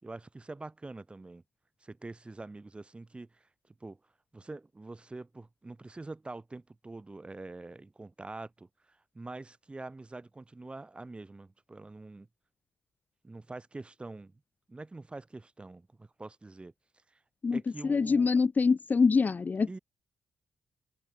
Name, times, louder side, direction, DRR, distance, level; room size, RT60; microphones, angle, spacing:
voice 1, 0.0-1.4 1.8-3.5 3.8-4.0 4.3-12.3 13.2-14.4 14.7-16.7 17.1-17.2 17.5-18.3 19.7-19.8, right 2 dB, 25° right, 6.6 m, -45 dB
voice 2, 17.4-19.8, left 4 dB, 40° left, 1.5 m, -25 dB
cardioid pair, 65°, 4 cm